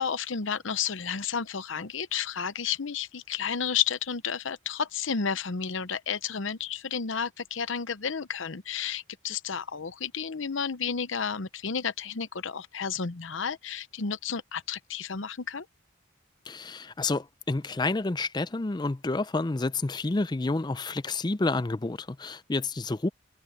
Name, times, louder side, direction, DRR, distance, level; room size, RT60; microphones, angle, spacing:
voice 1, 0.0-15.7, left 7 dB, 80° left, 0.8 m, -31 dB
voice 2, 16.5-23.1, left 3 dB, 20° left, 0.5 m, -29 dB
open air
head